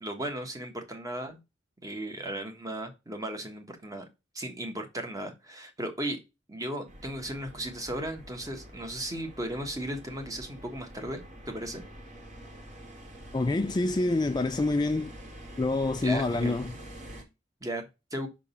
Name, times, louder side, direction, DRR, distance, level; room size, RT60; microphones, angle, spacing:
voice 1, 0.0-1.4 1.8-4.0 4.3-6.2 6.5-11.8 16.0-16.6 17.6-18.3, right 1 dB, 20° right, 1.3 m, -36 dB
sound 1, 6.9-17.2, right 1 dB, 40° right, 1.9 m, -46 dB
voice 2, 13.3-15.1 15.6-16.7, left 2 dB, 25° left, 0.4 m, -27 dB
6.0 x 3.7 x 5.5 m
head